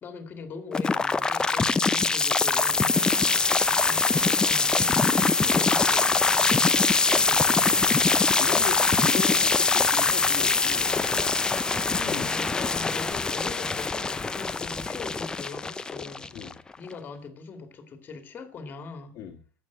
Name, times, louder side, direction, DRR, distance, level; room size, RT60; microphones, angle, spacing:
voice 1, 0.0-7.9 11.9-16.3 16.8-19.1, left 4 dB, 25° left, 2.3 m, -41 dB
sound 1, 0.7-16.7, left 4 dB, 10° left, 0.6 m, -23 dB
Crowd, 5.8-6.5 6.9-11.8 12.0-12.7 13.1-13.2, right 3 dB, 85° right, 6.1 m, -53 dB
voice 2, 8.1-11.2 12.0-12.4 16.3-16.5 19.1-19.4, left 8 dB, 45° left, 1.7 m, -38 dB
12.5 x 8.6 x 8.4 m
supercardioid pair, 145°, 7 cm